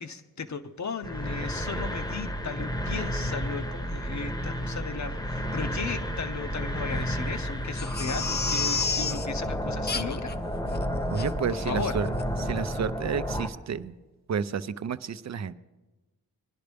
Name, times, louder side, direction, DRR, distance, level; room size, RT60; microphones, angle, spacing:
voice 1, 0.0-10.3 11.5-12.0, left 5 dB, 50° left, 7 dB, 0.8 m, -36 dB
sound 1, 1.0-13.5, equal, 10° left, 0.9 m, -31 dB
Crying sobbing, 7.8-9.3 9.9-10.3 10.7-10.8 11.2-11.3 11.8-11.9 12.2-12.3, left 4 dB, 30° left, 0.5 m, -30 dB
voice 2, 11.1-12.1 12.4-13.9 14.3-15.5, right 7 dB, 50° right, 14 dB, 0.5 m, -31 dB
21.0 x 11.0 x 3.4 m, 1.2 s
wide cardioid pair, 90°, 36 cm